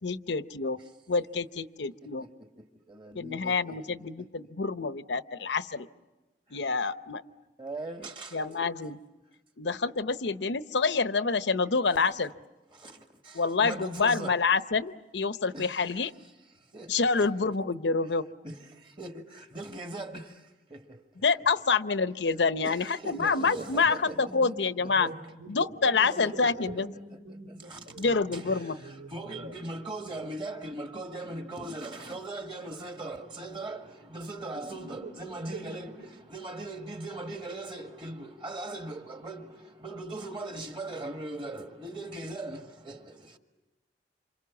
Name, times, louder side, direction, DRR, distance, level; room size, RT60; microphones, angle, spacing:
voice 1, 0.0-0.8 1.1-2.3 3.1-5.9 6.5-7.2 8.3-9.0 9.6-12.3 13.3-16.1 16.9-18.2 21.2-25.1 25.5-26.9 28.0-28.8, left 4 dB, 75° left, 0.8 m, -27 dB
voice 2, 2.0-4.0 6.5-6.6 7.6-8.4 12.7-14.3 15.5-15.7 16.7-17.5 18.4-21.0 22.6-25.1 26.0-26.8 27.3-27.9 28.3-36.0 36.3-43.4, right 2 dB, 30° right, 1.7 m, -40 dB
voice 3, 23.3-23.7 24.1-25.5 25.8-29.6 33.2-33.3 34.0-34.1 34.4-36.1, right 2 dB, 85° right, 5.5 m, -45 dB
28.0 x 27.0 x 7.1 m
head